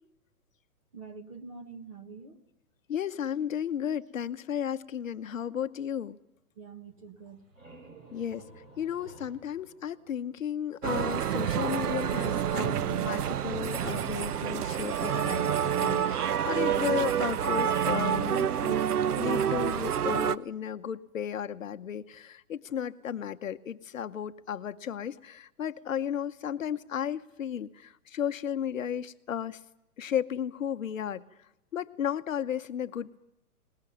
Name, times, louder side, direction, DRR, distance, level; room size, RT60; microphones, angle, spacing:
voice 1, 0.9-2.4 6.6-7.4, right 4 dB, 20° right, 7 dB, 1.2 m, -46 dB
voice 2, 2.9-6.2 8.1-8.4 8.8-18.8 19.2-29.6 30.0-31.2 31.7-33.2, left 9 dB, 60° left, 11 dB, 0.9 m, -34 dB
sound 1, 7.2-10.8, right 2 dB, 60° right, 6.4 m, -53 dB
sound 2, 10.8-20.4, right 9 dB, 90° right, 0.9 m, -28 dB
20.5 x 20.0 x 9.2 m, 0.88 s
hypercardioid pair, 180°, 45 cm